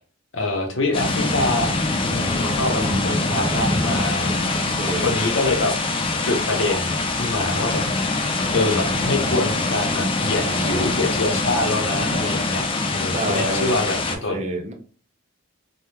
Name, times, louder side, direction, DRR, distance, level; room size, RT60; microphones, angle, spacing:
voice 1, 0.3-4.4 5.0-5.7 6.2-8.1 8.5-12.7 12.9-14.4, left 2 dB, 65° left, 3 dB, 0.7 m, -25 dB
sound 1, 0.9-14.2, left 3 dB, 25° left, 0.4 m, -24 dB
sound 2, 1.6-9.6, right 1 dB, ahead, 0.8 m, -38 dB
voice 2, 2.8-3.3 4.6-5.1 10.0-11.0 13.1-13.7 14.1-14.7, right 1 dB, 30° right, 3 dB, 0.5 m, -29 dB
3.3 x 2.2 x 2.7 m, 0.40 s
head